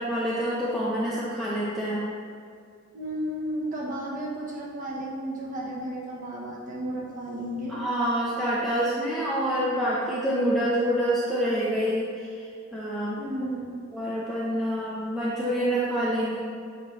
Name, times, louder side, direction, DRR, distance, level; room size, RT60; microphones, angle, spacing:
voice 1, 0.0-2.1 7.7-12.5 12.7-13.2 13.9-16.4, equal, ahead, -9 dB, 0.7 m, -27 dB
voice 2, 2.9-7.8 13.2-13.8, right 1 dB, 40° right, -4 dB, 1.2 m, -33 dB
8.0 x 4.0 x 3.2 m, 2.3 s
head